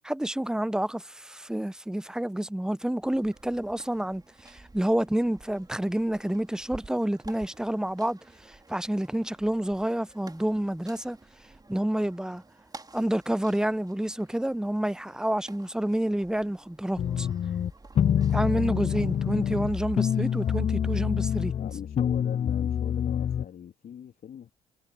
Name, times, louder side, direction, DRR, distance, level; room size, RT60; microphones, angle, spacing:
voice 1, 0.0-11.2 11.7-12.4 12.9-17.3 18.3-21.5, right 1 dB, 5° right, 0.8 m, -29 dB
sound 1, 3.0-20.6, right 3 dB, 20° right, 4.2 m, -52 dB
sound 2, 17.0-23.5, left 9 dB, 35° left, 0.4 m, -26 dB
voice 2, 21.6-24.5, left 9 dB, 50° left, 3.5 m, -42 dB
hypercardioid pair, 50°, 19 cm